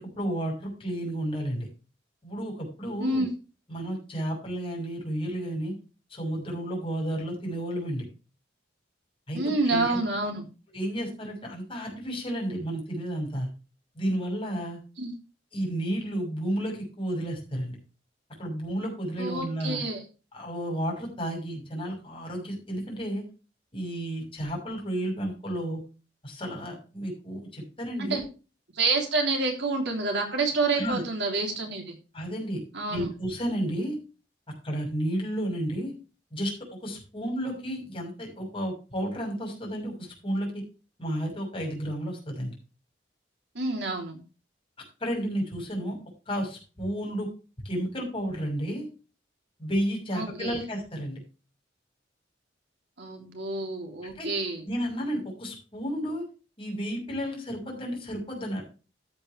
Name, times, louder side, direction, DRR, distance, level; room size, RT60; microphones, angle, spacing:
voice 1, 0.0-1.7 2.2-3.2 3.7-5.7 6.1-8.0 9.3-10.0 10.7-13.5 13.9-14.8 15.5-17.8 18.4-19.8 20.3-23.2 23.7-25.8 26.2-28.3 30.7-31.0 32.1-32.6 32.9-34.0 34.6-35.9 36.3-36.5 36.8-40.5 41.0-42.5 45.0-46.0 46.3-47.3 47.6-48.9 49.6-51.2 54.0-54.3 54.6-56.2 56.6-58.6, equal, 30° left, 0 dB, 6.3 m, -32 dB
voice 2, 9.3-10.4 15.0-15.1 19.2-20.0 28.0-28.2 28.7-31.9 32.7-33.1 43.5-44.2 50.1-50.6 53.0-54.6, right 3 dB, 70° right, 3 dB, 3.5 m, -28 dB
13.5 x 8.9 x 3.4 m, 0.33 s
head